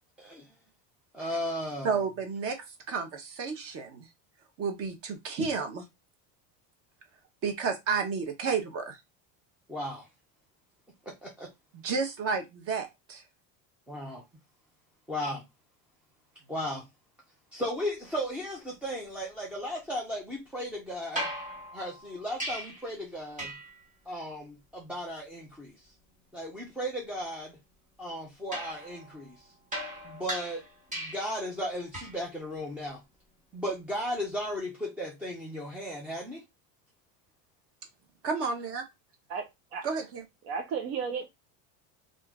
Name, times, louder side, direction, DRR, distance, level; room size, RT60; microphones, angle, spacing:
voice 1, 1.1-1.9 9.7-10.1 11.2-11.5 13.9-14.2 15.1-15.4 16.5-16.8 17.5-21.3 21.7-23.6 24.1-25.7 26.3-27.6 28.0-29.4 30.0-30.6 30.9-33.0 33.5-36.4, equal, 5° right, 0.3 m, -35 dB
voice 2, 1.8-4.1 4.6-5.8 7.4-9.0 11.7-13.2 38.2-38.8 39.8-40.2, right 5 dB, 35° right, 0.9 m, -31 dB
sound 1, 21.2-22.9 23.4-23.8 28.5-31.4 31.9-32.3 34.3-34.4, equal, 20° right, 1.3 m, -38 dB
voice 3, 39.3-39.8 40.4-41.3, right 6 dB, 70° right, 0.9 m, -34 dB
3.5 x 2.6 x 3.5 m
cardioid pair, 165°, 39 cm